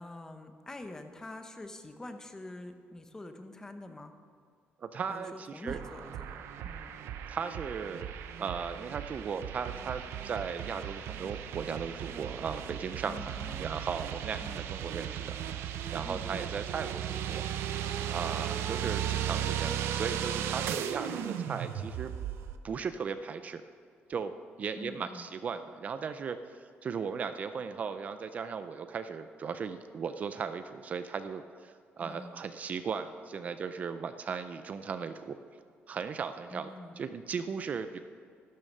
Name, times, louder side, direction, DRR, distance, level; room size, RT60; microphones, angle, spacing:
voice 1, 0.0-4.1 5.1-7.0 13.0-13.7 14.4-14.7 16.0-16.5 24.8-25.3 32.0-32.4 36.5-37.0, left 2 dB, 15° left, 7 dB, 0.8 m, -46 dB
voice 2, 4.8-5.8 7.3-8.1 8.4-22.1 22.6-23.6 24.1-24.3 24.6-35.4 35.9-36.7 37.0-38.0, right 6 dB, 35° right, 10 dB, 0.5 m, -37 dB
sound 1, 5.7-22.6, right 9 dB, 85° right, 0.8 m, -36 dB
12.5 x 12.0 x 5.5 m, 2.3 s
cardioid pair, 160°, 4 cm